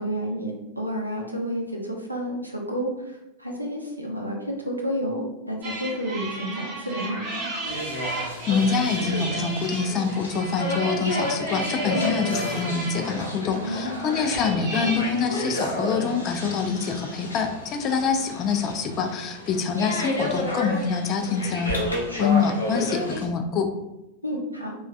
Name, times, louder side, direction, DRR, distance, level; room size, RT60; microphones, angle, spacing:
voice 1, 0.0-7.5 11.9-12.2 13.6-14.1 24.2-24.8, equal, 90° right, 0 dB, 0.5 m, -30 dB
sound 1, 5.6-15.0, right 2 dB, 45° right, 0.9 m, -34 dB
sound 2, 7.6-23.2, left 1 dB, 80° left, 0.7 m, -31 dB
voice 2, 8.1-21.7 22.2-23.7, left 5 dB, 30° left, 5 dB, 0.3 m, -25 dB
3.0 x 2.2 x 2.4 m, 0.94 s
figure-of-eight pair, 90°, 0 cm